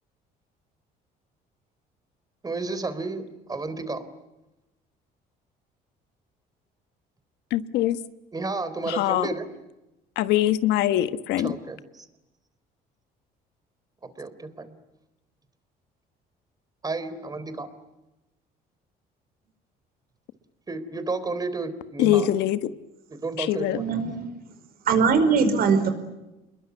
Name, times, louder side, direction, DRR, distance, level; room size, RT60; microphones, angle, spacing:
voice 1, 2.4-4.0 8.3-9.5 11.4-12.1 14.2-14.8 16.8-17.7 20.7-22.3 23.1-24.0, right 3 dB, 20° right, 3.6 m, -32 dB
voice 2, 7.5-8.0 8.9-9.3 10.2-11.5 22.0-22.6 23.4-23.8, left 13 dB, 90° left, 1.3 m, -23 dB
voice 3, 23.7-24.2 24.8-25.9, right 5 dB, 60° right, 5.1 m, -21 dB
27.5 x 22.0 x 9.5 m
cardioid pair, 110°, 17 cm